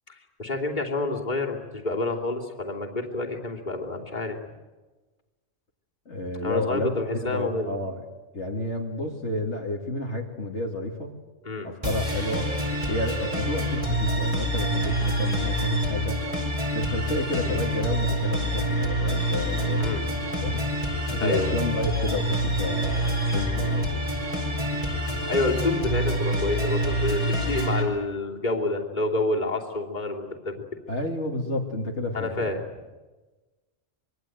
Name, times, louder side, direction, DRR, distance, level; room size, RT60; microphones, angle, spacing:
voice 1, 0.1-4.4 6.4-7.7 11.4-11.7 19.8-20.0 21.2-21.5 25.3-30.5 32.1-32.6, left 2 dB, 35° left, 0 dB, 3.1 m, -28 dB
voice 2, 6.1-8.1 8.3-11.1 11.6-12.5 12.9-16.2 16.7-20.6 21.1-24.1 30.9-32.5, left 2 dB, 65° left, 1 dB, 2.6 m, -30 dB
sound 1, 11.8-27.8, equal, 25° right, 4.5 m, -27 dB
25.5 x 22.5 x 9.2 m, 1.2 s
omnidirectional pair, 1.3 m